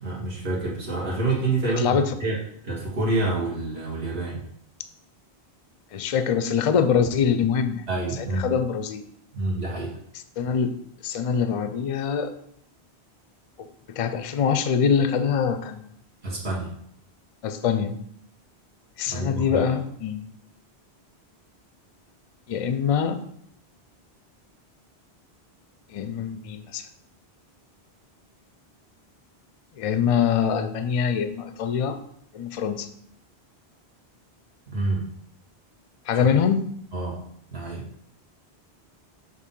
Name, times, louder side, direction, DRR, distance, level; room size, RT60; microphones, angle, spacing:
voice 1, 0.0-2.4 2.6-4.4 7.9-8.5 9.3-9.9 16.2-16.7 19.1-19.6 34.7-35.1 36.9-37.2 37.5-37.9, right 2 dB, 70° right, -6 dB, 1.8 m, -27 dB
voice 2, 1.8-2.2 5.9-7.9 8.1-9.1 10.4-10.8 11.0-12.3 13.6-15.8 17.4-18.0 19.0-20.2 22.5-23.2 25.9-26.9 29.8-32.0 32.3-32.9 36.1-36.7, left 7 dB, 50° left, 9 dB, 0.4 m, -24 dB
6.7 x 2.7 x 5.3 m, 0.69 s
omnidirectional pair, 1.1 m